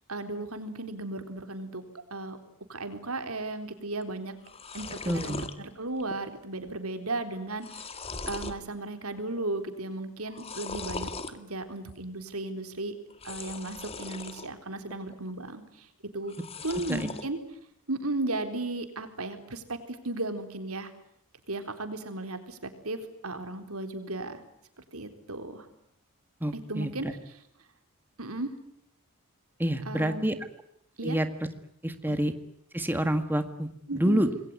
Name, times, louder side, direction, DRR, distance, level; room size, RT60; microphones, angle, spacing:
voice 1, 0.1-1.8 2.1-2.4 2.7-4.3 4.7-13.0 13.2-15.9 16.1-16.4 16.6-17.4 17.9-20.9 21.5-24.4 24.9-25.7 26.5-27.1 28.2-28.5 29.9-30.4 31.0-31.2 32.1-32.2 33.9-34.4, right 2 dB, 85° right, 8 dB, 4.0 m, -35 dB
sound 1, 4.0-4.1 4.3-5.5 6.0-6.4 6.7-6.8 7.3-8.6 9.1-9.5 10.3-11.3 13.1-14.5 14.9-15.5 16.2-17.3, left 3 dB, 25° left, 2.0 m, -39 dB
voice 2, 5.1-5.4 16.9-17.0 26.4-26.9 29.6-30.3 31.0-31.3 31.8-32.3 32.7-34.3, right 1 dB, 10° right, 9 dB, 1.7 m, -27 dB
27.5 x 21.5 x 9.6 m, 0.74 s
head